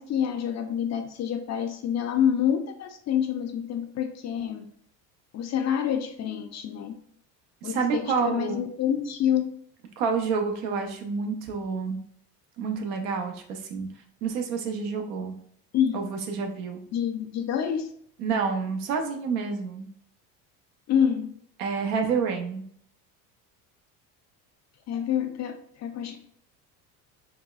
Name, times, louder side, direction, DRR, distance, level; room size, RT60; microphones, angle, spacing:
voice 1, 0.0-4.7 5.3-6.9 7.6-9.5 15.7-16.0 16.9-17.9 20.9-21.3 24.9-26.2, left 9 dB, 40° left, 6 dB, 0.4 m, -27 dB
voice 2, 7.6-8.6 10.0-12.0 12.6-13.9 14.2-15.4 15.9-16.8 18.2-19.9 21.6-22.6, right 5 dB, 80° right, 4 dB, 0.8 m, -28 dB
4.1 x 2.2 x 2.3 m, 0.63 s
supercardioid pair, 80°, 47 cm